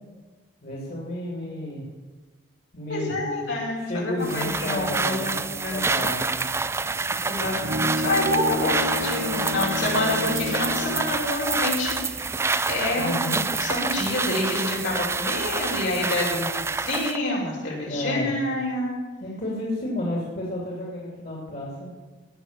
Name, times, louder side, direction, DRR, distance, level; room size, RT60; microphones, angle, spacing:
voice 1, 0.6-1.8 2.7-3.5 3.8-6.4 12.9-13.4 17.8-18.3 19.2-21.9, left 1 dB, 50° left, -4 dB, 2.8 m, -32 dB
voice 2, 2.9-5.3 5.6-5.8 7.2-12.3 12.7-19.0, left 1 dB, 80° left, -4 dB, 5.3 m, -27 dB
sound 1, 4.2-17.2, right 4 dB, 15° right, 0.3 m, -27 dB
Bowed string instrument, 7.1-11.3, left 2 dB, 85° right, 1.5 m, -30 dB
18.0 x 6.6 x 7.3 m, 1.3 s
head